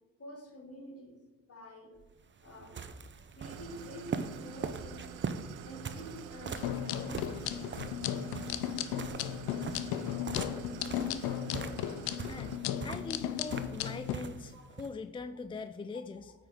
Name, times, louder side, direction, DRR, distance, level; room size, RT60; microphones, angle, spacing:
voice 1, 0.2-1.9 2.4-2.8 3.3-5.2 5.7-7.6 14.5-14.6, equal, 40° left, 2 dB, 2.6 m, -48 dB
sound 1, 2.0-14.9, right 5 dB, 30° right, 0.7 m, -43 dB
Idling, 3.4-12.6, right 10 dB, 85° right, 0.6 m, -48 dB
sound 2, 6.6-14.2, left 10 dB, 75° left, 0.6 m, -35 dB
voice 2, 12.3-12.6 12.8-16.3, left 4 dB, 15° left, 10 dB, 0.3 m, -42 dB
8.9 x 3.8 x 5.1 m, 1.2 s
supercardioid pair, 60°, 37 cm